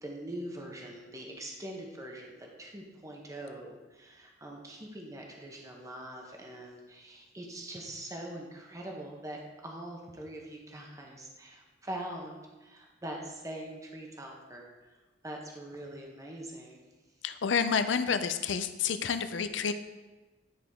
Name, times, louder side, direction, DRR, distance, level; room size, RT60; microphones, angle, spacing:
voice 1, 0.0-14.9 15.2-16.8, right 1 dB, 15° right, 0 dB, 1.0 m, -43 dB
voice 2, 17.2-19.7, left 6 dB, 75° left, 10 dB, 0.5 m, -29 dB
10.0 x 4.8 x 3.6 m, 1.2 s
head